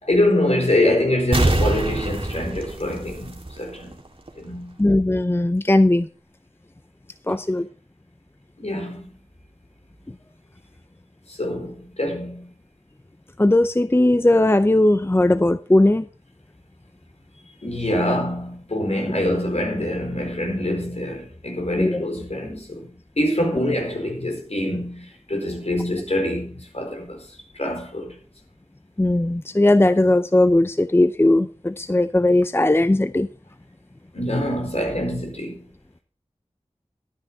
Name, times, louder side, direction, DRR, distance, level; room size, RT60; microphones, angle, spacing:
voice 1, 0.0-3.9 4.4-4.8 8.6-9.0 11.3-12.5 17.6-22.9 23.2-27.3 27.5-28.1 34.1-35.6, left 1 dB, 65° left, 4.4 m, -25 dB
sound 1, 1.3-3.9 4.3-4.4, right 2 dB, 50° right, 1.9 m, -24 dB
voice 2, 4.8-6.1 7.3-7.7 13.4-16.0 21.8-22.0 29.0-33.3, left 1 dB, 20° left, 0.5 m, -18 dB
12.5 x 9.8 x 4.3 m
wide cardioid pair, 45°, 12 cm